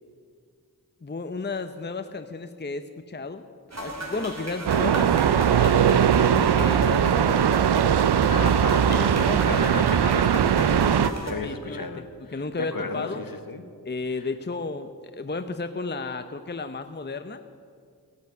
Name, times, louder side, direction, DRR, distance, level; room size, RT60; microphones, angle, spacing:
voice 1, 1.0-3.4 3.7-5.2 5.5-7.6 9.2-9.9 10.8-10.9 11.4-12.1 12.3-13.2 13.8-17.4, left 3 dB, 25° left, 9 dB, 0.7 m, -33 dB
sound 1, 3.7-11.3, right 1 dB, 40° right, 2.9 m, -35 dB
sound 2, 4.7-11.1, right 8 dB, 85° right, 0.6 m, -20 dB
voice 2, 8.2-13.6 14.1-14.3, left 3 dB, 60° left, 8 dB, 1.3 m, -34 dB
16.5 x 8.1 x 9.2 m, 2.2 s
cardioid pair, 40°, 39 cm